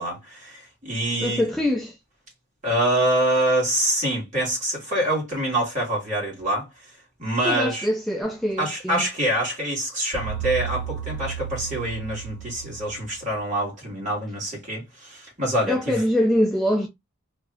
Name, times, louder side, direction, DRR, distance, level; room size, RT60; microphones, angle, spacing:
voice 1, 0.0-1.4 2.6-6.7 7.2-7.9 8.6-16.0, right 1 dB, 35° right, 1.9 m, -25 dB
voice 2, 1.2-2.0 7.4-9.1 15.7-16.9, left 1 dB, ahead, 0.3 m, -23 dB
sound 1, 10.1-13.3, right 9 dB, 65° right, 1.2 m, -33 dB
3.2 x 2.4 x 3.4 m
head